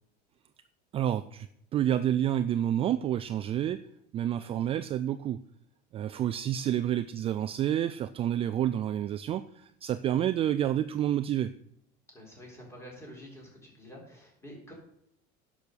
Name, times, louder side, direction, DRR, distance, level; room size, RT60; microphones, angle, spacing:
voice 1, 0.9-1.5 1.7-3.8 4.1-5.4 5.9-11.5, right 11 dB, 30° right, 12 dB, 0.4 m, -29 dB
voice 2, 12.1-14.7, equal, 15° left, -1 dB, 4.1 m, -48 dB
10.5 x 6.2 x 6.8 m, 0.74 s
cardioid pair, 155°, 20 cm